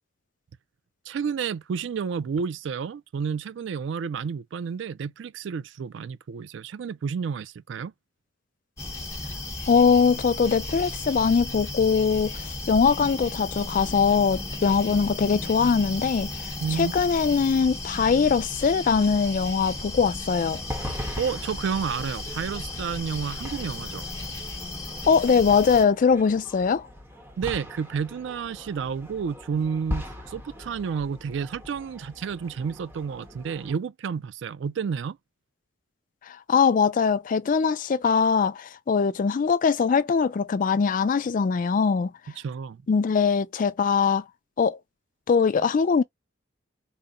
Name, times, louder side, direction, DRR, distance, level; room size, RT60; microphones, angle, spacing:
voice 1, 1.1-7.9 16.6-16.9 21.2-24.0 27.4-35.2 42.4-42.8, right 6 dB, 65° right, 0.3 m, -30 dB
sound 1, 8.8-25.8, left 2 dB, 15° left, 1.0 m, -35 dB
voice 2, 9.7-20.6 25.1-26.9 36.3-42.1 42.9-44.2 44.6-44.8 45.3-46.0, left 5 dB, 45° left, 0.3 m, -22 dB
sound 2, 20.3-33.7, left 1 dB, 10° right, 0.9 m, -40 dB
3.9 x 2.0 x 3.6 m
head